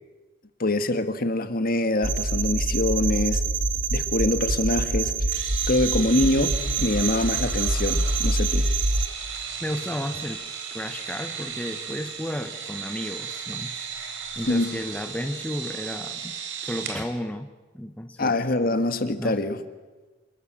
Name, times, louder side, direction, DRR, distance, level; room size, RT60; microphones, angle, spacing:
voice 1, 0.6-3.5 3.9-5.4 5.7-8.7 14.5-14.7 18.2-19.6, left 2 dB, 50° left, 9 dB, 1.7 m, -24 dB
sound 1, 2.0-9.1, right 3 dB, 65° right, 1.9 m, -25 dB
sound 2, 5.3-17.0, right 6 dB, 85° right, 4.0 m, -35 dB
voice 2, 9.3-10.4 10.7-13.8 14.4-16.3 16.6-18.4 19.2-19.4, equal, 5° left, 6 dB, 1.0 m, -33 dB
27.5 x 21.0 x 7.7 m, 1.3 s
head